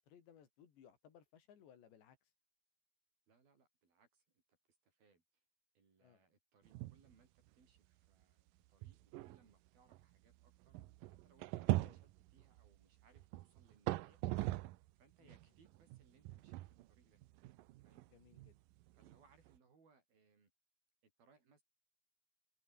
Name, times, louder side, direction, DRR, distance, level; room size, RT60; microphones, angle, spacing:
voice 1, 0.0-2.3 6.0-6.2 11.8-12.0 15.2-15.4 18.1-18.6, left 8 dB, 85° left, 5.4 m, -64 dB
voice 2, 3.3-4.4 4.8-5.4 5.7-10.8 11.1-14.2 15.0-17.2 17.8-18.1 18.9-20.5 21.0-21.6, right 4 dB, 60° right, 7.9 m, -72 dB
sound 1, 6.7-7.1 7.5-7.6 8.2-8.3 8.8-14.9 15.3-19.6, right 17 dB, 85° right, 1.9 m, -42 dB
open air
omnidirectional pair, 4.9 m